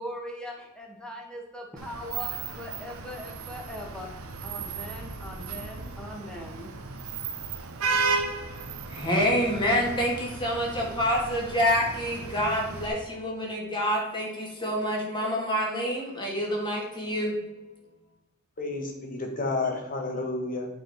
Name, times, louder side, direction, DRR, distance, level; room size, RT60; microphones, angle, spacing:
voice 1, 0.0-4.1 4.4-6.7, left 1 dB, 5° left, -1 dB, 1.6 m, -40 dB
Vehicle horn car horn honking / Traffic noise roadway noise, 1.8-12.9, right 4 dB, 80° right, 1.0 m, -34 dB
voice 2, 8.9-17.4, equal, 20° left, -2 dB, 2.2 m, -27 dB
voice 3, 18.6-20.7, left 3 dB, 40° left, 3 dB, 1.6 m, -30 dB
8.7 x 5.7 x 4.3 m, 1.0 s
head